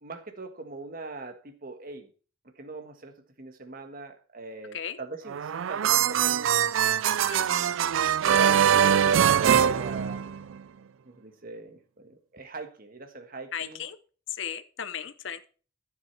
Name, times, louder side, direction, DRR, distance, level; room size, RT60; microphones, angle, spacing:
voice 1, 0.0-2.1 2.6-7.5 8.3-10.5 11.0-13.8, right 3 dB, 45° right, 1.4 m, -41 dB
sound 1, 5.3-10.6, right 9 dB, 85° right, 0.4 m, -23 dB
voice 2, 13.5-14.0 14.3-15.4, left 8 dB, 70° left, 0.7 m, -35 dB
11.0 x 7.4 x 4.5 m
head